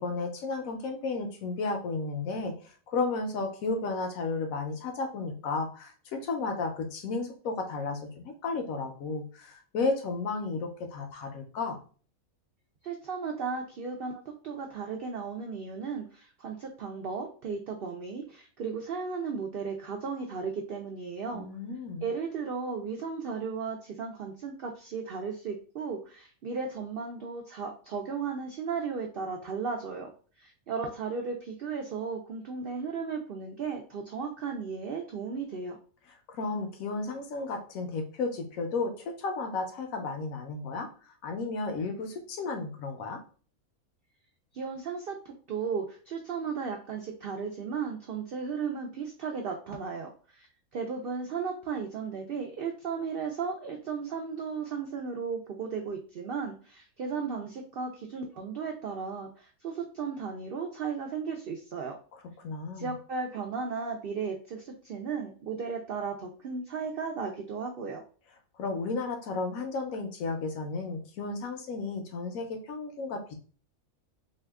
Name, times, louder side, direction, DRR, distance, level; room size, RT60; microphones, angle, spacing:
voice 1, 0.0-2.5 2.9-11.8 21.3-22.0 36.3-40.9 41.2-43.2 62.4-62.9 68.6-73.3, left 3 dB, 75° left, 5 dB, 1.1 m, -33 dB
voice 2, 12.8-21.5 22.0-30.1 30.4-35.8 44.5-50.5 50.7-62.0 62.8-68.0, right 5 dB, 70° right, 2 dB, 0.5 m, -35 dB
2.8 x 2.3 x 3.4 m, 0.40 s
omnidirectional pair, 1.5 m